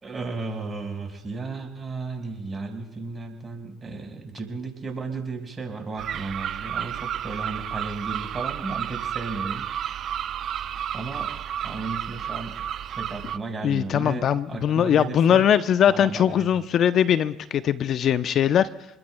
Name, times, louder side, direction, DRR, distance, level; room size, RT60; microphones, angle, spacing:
voice 1, 0.0-9.7 10.9-11.3 11.6-12.6 12.9-15.4 15.9-16.5, right 3 dB, 30° right, 2 dB, 4.8 m, -34 dB
sound 1, 6.0-13.4, right 9 dB, 55° right, 0.6 m, -31 dB
voice 2, 13.6-18.7, left 9 dB, 55° left, 13 dB, 0.6 m, -21 dB
29.0 x 21.0 x 2.2 m, 0.93 s
hypercardioid pair, 75°, 0 cm